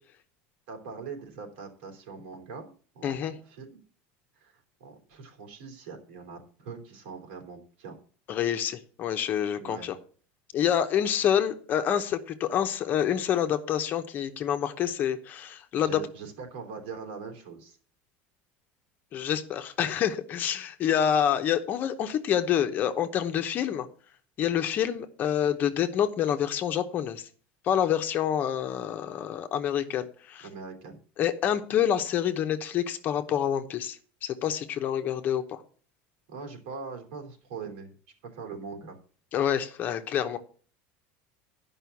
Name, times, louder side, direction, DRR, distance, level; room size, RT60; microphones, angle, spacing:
voice 1, 0.7-2.7 2.9-3.8 4.3-8.0 9.6-9.9 15.7-17.8 30.4-31.0 36.3-37.9 38.2-39.0, right 5 dB, 90° right, 3.3 m, -42 dB
voice 2, 3.0-3.3 8.3-9.9 10.5-16.0 19.1-23.9 24.4-27.3 27.6-30.5 31.2-35.6 39.3-40.4, left 9 dB, 30° left, 0.9 m, -27 dB
11.0 x 5.6 x 7.1 m
cardioid pair, 165°, 6 cm